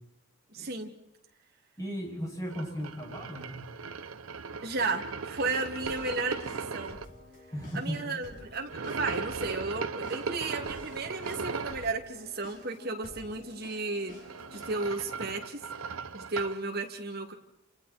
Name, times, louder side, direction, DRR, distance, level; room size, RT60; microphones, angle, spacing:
voice 1, 0.5-0.9 4.6-7.0 7.7-14.2 14.5-15.6 16.1-17.3, right 3 dB, 50° right, 2 dB, 2.6 m, -34 dB
voice 2, 1.8-3.6 7.5-8.0, equal, 15° left, -2 dB, 7.4 m, -35 dB
sound 1, 2.5-7.0 8.7-11.9 14.0-16.6, right 5 dB, 80° right, 0.8 m, -38 dB
sound 2, 5.8-15.4, left 1 dB, 40° left, 7.7 m, -51 dB
30.0 x 28.0 x 4.4 m, 0.84 s
head